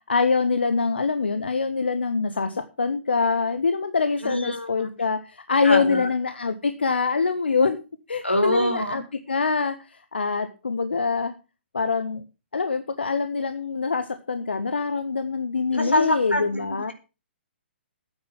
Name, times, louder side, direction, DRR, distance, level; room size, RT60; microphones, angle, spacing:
voice 1, 0.1-7.8 8.1-9.0 9.3-11.3 11.7-12.2 12.5-16.9, left 4 dB, 65° left, 10 dB, 1.4 m, -24 dB
voice 2, 4.2-4.9 5.6-6.1 8.2-9.0 15.7-16.4, left 1 dB, 85° left, 6 dB, 4.4 m, -24 dB
14.0 x 9.6 x 5.7 m, 0.32 s
figure-of-eight pair, 125°, 6 cm